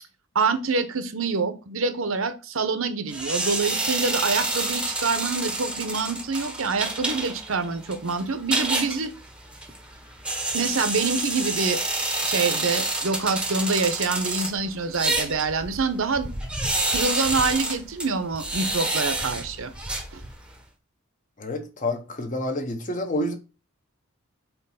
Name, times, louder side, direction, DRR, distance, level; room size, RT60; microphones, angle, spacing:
voice 1, 0.3-9.1 10.5-11.8 12.2-16.3 16.9-19.7 20.1-20.2, right 4 dB, 65° right, 0.8 m, -26 dB
sound 1, 3.1-20.6, right 2 dB, 5° right, 0.8 m, -29 dB
voice 2, 21.4-23.4, left 1 dB, 35° left, 0.9 m, -28 dB
4.5 x 4.0 x 5.5 m
head